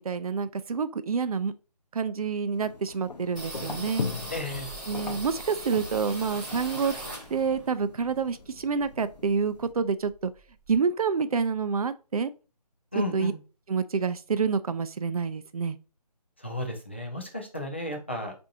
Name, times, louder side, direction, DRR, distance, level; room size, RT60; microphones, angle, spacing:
voice 1, 0.0-1.5 1.9-4.1 4.9-7.0 7.3-10.3 10.7-12.3 13.1-13.3 13.7-15.8, right 5 dB, 60° right, 0.4 m, -28 dB
sound 1, 2.5-9.7, left 4 dB, 90° left, 0.6 m, -40 dB
sound 2, 3.4-7.7 8.0-9.4 9.7-9.8 10.1-10.8, right 1 dB, 15° right, 0.8 m, -40 dB
voice 2, 4.3-4.7 12.9-13.4 16.4-18.3, left 1 dB, 15° left, 0.4 m, -33 dB
4.3 x 2.6 x 2.7 m
figure-of-eight pair, 165°, 21 cm